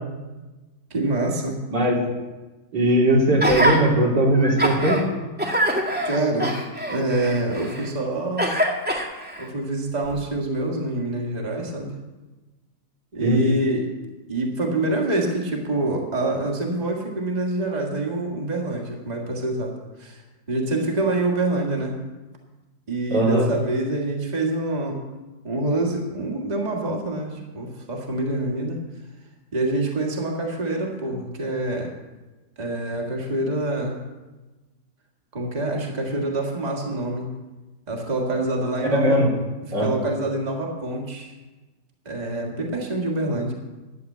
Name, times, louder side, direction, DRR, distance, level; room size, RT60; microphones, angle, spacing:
voice 1, 0.9-1.6 6.0-6.5 6.9-8.5 9.4-11.9 13.1-13.9 14.3-19.7 20.0-20.2 20.5-22.0 22.9-25.0 25.4-28.8 29.5-31.9 32.6-34.0 35.3-37.3 37.9-39.2 39.6-41.3 42.1-43.5, right 2 dB, 25° right, 0 dB, 1.8 m, -26 dB
voice 2, 2.7-5.1 13.2-13.4 23.1-23.5 38.9-39.3 39.7-39.9, right 1 dB, 85° right, -3 dB, 3.5 m, -19 dB
Gasp, 3.4-3.8 4.3-5.0 5.4-7.9 8.4-9.5 10.1-10.2, equal, 5° right, 1.7 m, -24 dB
11.5 x 7.2 x 8.4 m, 1.2 s
omnidirectional pair, 1.8 m